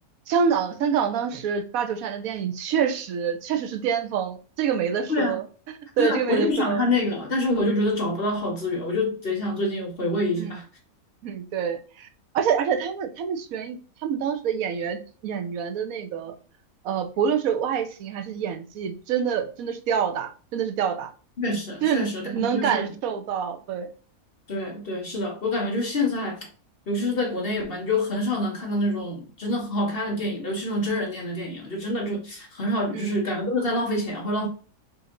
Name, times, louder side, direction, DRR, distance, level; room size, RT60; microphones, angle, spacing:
voice 1, 0.3-5.4 6.0-6.8 10.4-10.5 11.2-12.1 12.3-16.3 16.8-21.1 21.8-23.9 33.0-33.2, right 7 dB, 70° right, 1.1 m, -26 dB
voice 2, 6.0-10.7 21.4-22.8 24.5-26.5 26.9-34.5, left 1 dB, 45° left, 1.0 m, -26 dB
4.4 x 2.7 x 3.7 m
omnidirectional pair, 1.6 m